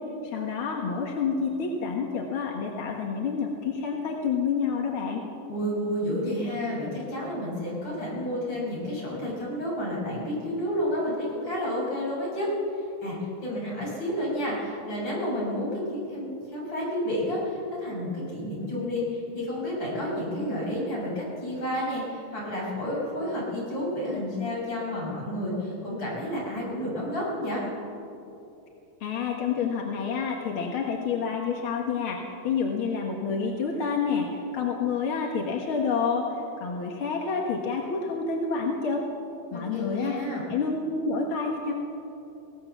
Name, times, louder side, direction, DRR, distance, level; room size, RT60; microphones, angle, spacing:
voice 1, 0.2-5.2 29.0-39.0 39.5-40.1 40.5-41.7, left 5 dB, 50° left, 0 dB, 1.8 m, -28 dB
voice 2, 5.5-12.5 13.0-27.6 39.5-40.4, left 1 dB, 30° left, -5 dB, 7.3 m, -30 dB
23.0 x 17.5 x 7.2 m, 2.9 s
omnidirectional pair, 4.0 m